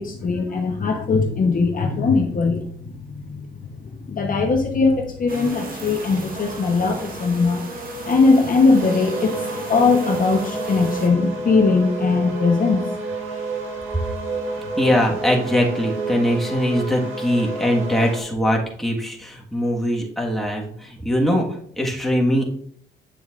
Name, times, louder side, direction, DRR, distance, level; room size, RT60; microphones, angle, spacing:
voice 1, 0.0-2.7 3.1-3.7 4.0-7.6 8.0-9.4 9.7-12.8, left 4 dB, 45° left, 2 dB, 1.1 m, -20 dB
sound 1, 5.3-11.1, right 2 dB, 45° right, 1.8 m, -34 dB
sound 2, 8.7-18.2, right 3 dB, 85° right, 1.6 m, -29 dB
voice 2, 14.8-21.4 21.8-22.4, equal, ahead, -2 dB, 1.7 m, -21 dB
8.5 x 6.9 x 2.6 m, 0.63 s
cardioid pair, 90°, 20 cm